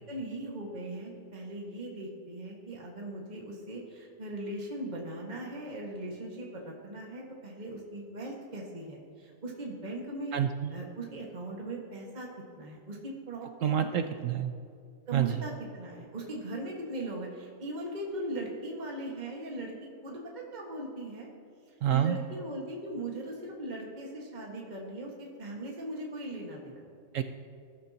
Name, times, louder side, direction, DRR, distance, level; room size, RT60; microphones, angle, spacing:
voice 1, 0.1-10.4 10.7-12.3 12.5-14.2 15.1-19.7 20.0-21.3 21.9-26.9, right 1 dB, 25° right, -2 dB, 1.7 m, -39 dB
voice 2, 10.3-10.7 13.6-14.5 15.1-15.4 21.8-22.2 27.1-27.2, right 10 dB, 70° right, 8 dB, 0.7 m, -28 dB
21.0 x 11.5 x 2.9 m, 2.5 s
omnidirectional pair, 1.8 m